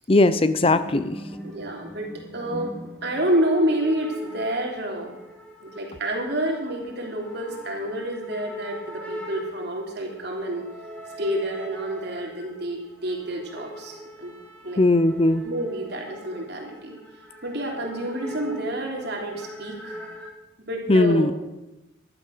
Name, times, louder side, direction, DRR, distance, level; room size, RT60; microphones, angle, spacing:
voice 1, 0.1-1.2 14.8-15.4 20.9-21.3, left 2 dB, 30° left, 13 dB, 0.5 m, -19 dB
sound 1, 0.6-20.3, equal, 5° left, 2.4 m, -41 dB
voice 2, 1.4-2.1 2.3-2.8 3.0-5.1 5.6-10.7 11.2-14.3 14.6-14.8 15.4-16.9 17.4-20.0 20.7-21.4, right 1 dB, 55° right, 1 dB, 3.3 m, -28 dB
15.0 x 12.0 x 6.6 m, 0.97 s
head